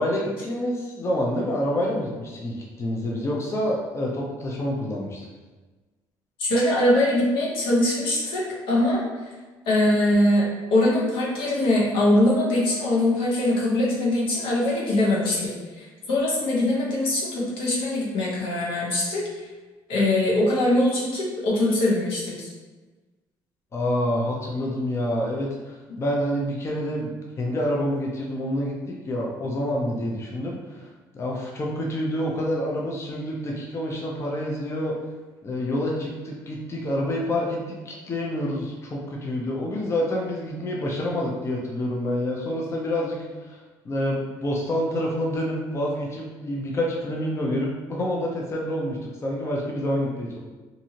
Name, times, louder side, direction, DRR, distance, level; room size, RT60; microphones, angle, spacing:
voice 1, 0.0-5.3 23.7-34.9 35.4-50.4, left 1 dB, 30° left, -2 dB, 0.5 m, -27 dB
voice 2, 6.4-9.3 9.7-19.5 19.9-22.5, left 1 dB, 75° left, -4 dB, 0.9 m, -22 dB
2.6 x 2.5 x 2.8 m, 1.3 s
cardioid pair, 90°, 9 cm